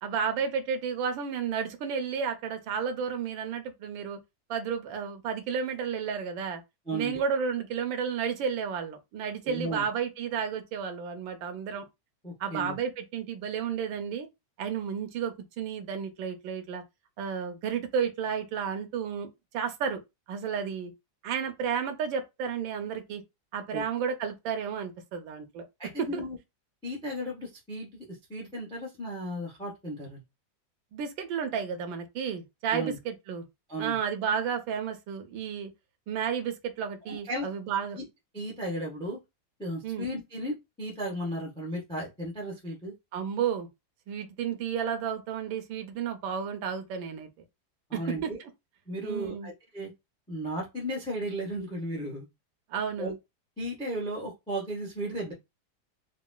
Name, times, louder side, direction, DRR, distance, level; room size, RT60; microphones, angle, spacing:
voice 1, 0.0-4.2 4.5-6.6 6.9-11.9 12.4-14.3 14.6-16.8 17.2-19.3 19.5-20.0 20.3-20.9 21.2-23.2 23.5-25.6 26.1-26.2 30.9-33.5 33.8-35.7 36.1-38.0 39.8-40.1 43.1-43.7 44.1-47.3 47.9-48.3 49.0-49.5 52.7-53.1, right 7 dB, 80° right, 1.3 m, -32 dB
voice 2, 6.9-7.2 9.4-9.9 12.2-12.8 23.7-23.8 25.8-26.4 26.8-28.0 28.3-30.2 32.7-33.0 33.7-34.0 37.0-37.5 37.9-38.0 38.3-39.2 39.6-42.9 47.9-48.4 48.9-49.9 50.3-52.3 53.0-53.1 53.6-55.3, equal, 10° left, 0.3 m, -35 dB
3.8 x 2.1 x 2.2 m
omnidirectional pair, 2.1 m